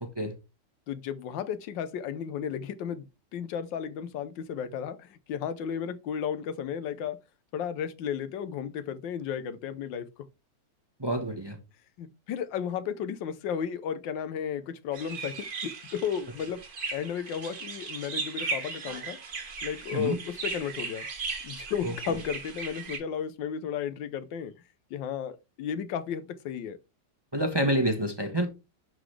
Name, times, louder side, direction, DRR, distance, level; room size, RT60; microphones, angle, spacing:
voice 1, 0.0-0.3 11.0-11.6 19.9-20.2 21.8-22.2 27.3-28.5, right 1 dB, 15° right, 0.9 m, -28 dB
voice 2, 0.9-3.1 3.3-7.2 7.5-10.1 12.0-16.6 16.9-19.2 19.6-21.1 21.4-24.5 24.9-26.8, left 8 dB, 85° left, 1.5 m, -34 dB
sound 1, 14.9-23.0, right 4 dB, 55° right, 2.0 m, -37 dB
11.0 x 3.9 x 3.3 m
omnidirectional pair, 2.0 m